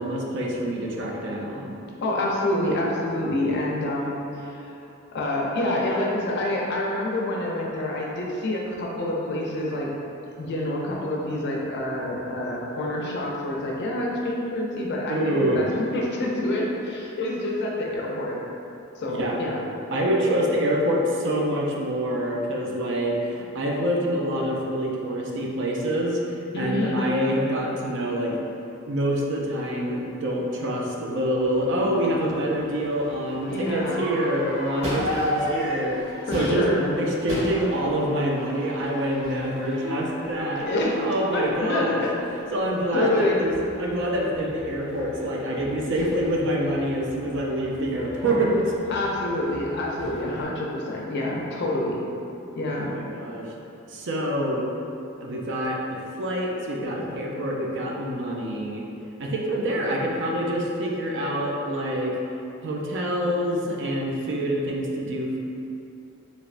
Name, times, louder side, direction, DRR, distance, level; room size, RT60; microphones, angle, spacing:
voice 1, 0.0-1.8 15.1-15.6 19.1-19.4 19.9-26.2 26.6-28.4 28.8-36.0 36.3-36.7 37.0-40.7 41.0-42.0 42.5-43.5 43.8-48.6 52.7-53.5 53.9-54.6 55.2-55.8 56.2-58.8 59.2-62.2 62.6-65.4, equal, 60° right, -1 dB, 0.4 m, -26 dB
voice 2, 2.0-4.8 5.1-9.9 10.4-18.4 19.0-19.6 26.5-27.0 33.5-34.1 36.3-36.9 40.5-42.1 42.9-43.4 48.9-52.0 52.6-52.9, left 1 dB, 55° left, -3 dB, 0.5 m, -27 dB
Crowd / Fireworks, 31.4-50.4, equal, 30° right, 1.2 m, -36 dB
3.2 x 2.9 x 2.5 m, 2.7 s
head